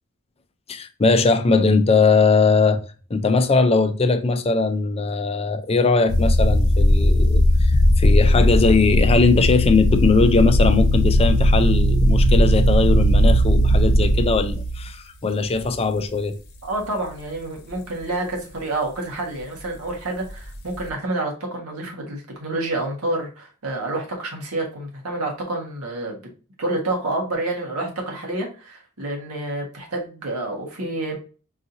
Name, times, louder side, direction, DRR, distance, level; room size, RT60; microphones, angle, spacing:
voice 1, 0.7-2.8 3.1-16.4, left 3 dB, 25° left, 0.5 m, -20 dB
sound 1, 6.1-14.9 15.6-16.0 16.5-16.6 20.2-20.9, equal, 90° left, 0.9 m, -17 dB
voice 2, 16.6-26.3 26.6-31.2, right 2 dB, 85° right, 1.5 m, -28 dB
4.8 x 2.8 x 2.7 m
head